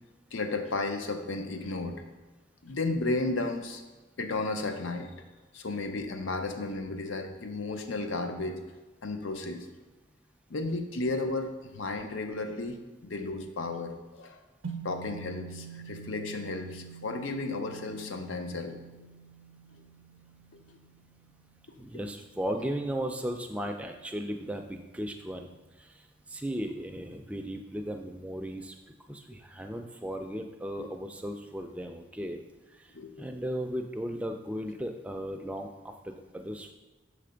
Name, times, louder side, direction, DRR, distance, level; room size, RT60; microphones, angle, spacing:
voice 1, 0.3-2.0 2.6-3.8 4.2-5.1 5.5-8.6 9.0-9.7 10.5-14.4 14.8-18.7 20.5-20.8 22.5-22.7 30.8-30.9 32.9-33.3, left 2 dB, 80° left, 6 dB, 0.6 m, -33 dB
sound 1, 14.6-23.1, right 7 dB, 85° right, 0.6 m, -46 dB
voice 2, 21.8-25.5 25.8-25.9 26.3-28.7 29.1-32.4 32.8-32.9 33.2-36.7, equal, 5° right, 4 dB, 0.3 m, -36 dB
6.7 x 3.3 x 5.0 m, 1.2 s
head